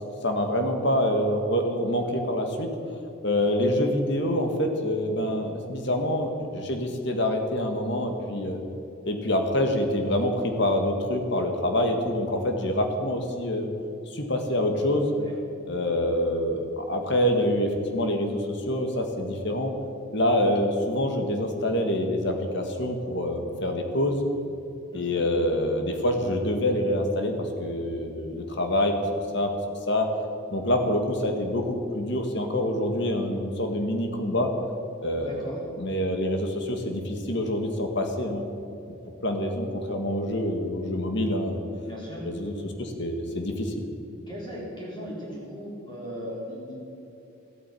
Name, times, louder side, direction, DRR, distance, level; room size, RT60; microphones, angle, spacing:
voice 1, 0.2-2.7 3.2-8.6 9.0-13.7 14.1-15.1 15.7-19.7 20.1-24.2 24.9-29.0 29.3-29.5 29.9-30.1 30.5-34.5 35.0-35.4 35.8-38.4 38.9-39.0 39.2-41.6 42.2-43.9, left 1 dB, 55° left, 4 dB, 1.8 m, -26 dB
voice 2, 24.9-25.2 35.2-35.6 41.8-42.2 44.3-46.8, equal, 20° left, -5 dB, 4.2 m, -38 dB
14.0 x 9.0 x 9.3 m, 2.9 s
head